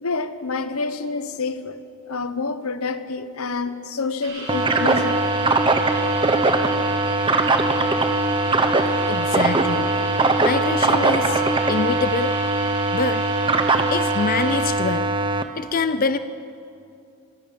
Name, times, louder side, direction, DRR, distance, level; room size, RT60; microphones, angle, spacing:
voice 1, 0.0-5.2 11.3-11.4, left 4 dB, 85° left, 12 dB, 1.0 m, -28 dB
sound 1, 4.2-14.6, right 2 dB, 75° right, 6.6 m, -35 dB
sound 2, 4.5-15.4, right 2 dB, 25° right, 0.9 m, -21 dB
voice 2, 9.1-9.9 10.4-11.4 11.7-12.3 12.9-13.2 13.9-15.3 15.6-16.2, left 4 dB, 40° left, 11 dB, 0.5 m, -25 dB
25.5 x 12.0 x 8.6 m, 2.6 s
head